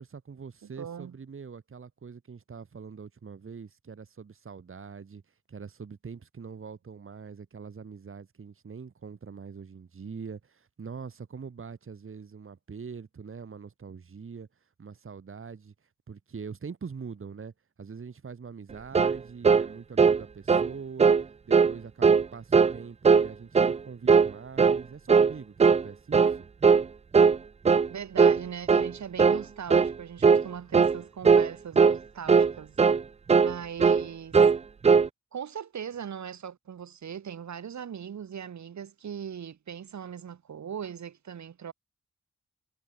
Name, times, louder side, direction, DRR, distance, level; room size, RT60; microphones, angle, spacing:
voice 1, 0.0-5.2 5.5-14.5 14.8-15.7 16.1-17.5 17.8-21.2 21.4-26.5, right 5 dB, 45° right, 1.4 m, -43 dB
voice 2, 0.6-1.2 27.9-32.8 33.4-34.4 35.3-41.7, right 8 dB, 70° right, 1.5 m, -39 dB
sound 1, 18.9-19.2 19.4-19.7 20.0-20.2 20.5-20.7 21.0-21.2 21.5-21.7 22.0-22.2 22.5-22.8 23.0-23.3 23.5-23.8 24.1-24.3 24.6-24.8 25.1-25.3 25.6-25.8 26.1-26.4 26.6-26.8 27.1-27.4 27.6-27.9 28.2-28.4 28.7-28.9 29.2-29.4 29.7-29.9 30.2-30.4 30.7-31.0 31.2-31.5 31.8-32.0 32.3-32.5 32.8-33.0 33.3-33.5 33.8-34.0 34.3-34.6 34.8-35.1, right 5 dB, 25° right, 0.3 m, -19 dB
cardioid pair, 50°, 30 cm